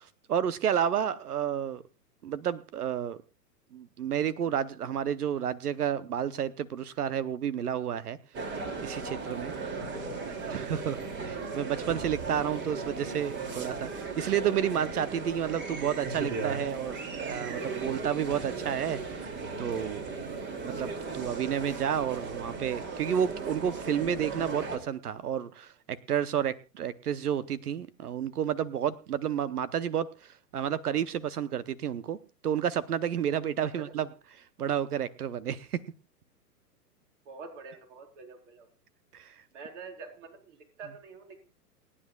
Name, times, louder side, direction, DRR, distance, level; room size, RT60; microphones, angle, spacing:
voice 1, 0.0-1.8 2.2-3.2 3.7-8.2 8.8-9.5 10.5-19.3 19.6-20.0 20.6-32.2 32.4-34.1 34.6-35.8 39.1-39.3, right 9 dB, 65° right, 18 dB, 0.9 m, -31 dB
sound 1, 8.3-24.8, right 4 dB, 20° right, 2.6 m, -36 dB
voice 2, 9.7-10.8 21.8-22.3 37.3-38.7 39.5-41.4, right 4 dB, 45° right, 5 dB, 4.3 m, -46 dB
29.0 x 9.9 x 2.3 m, 0.29 s
figure-of-eight pair, 115°, 49 cm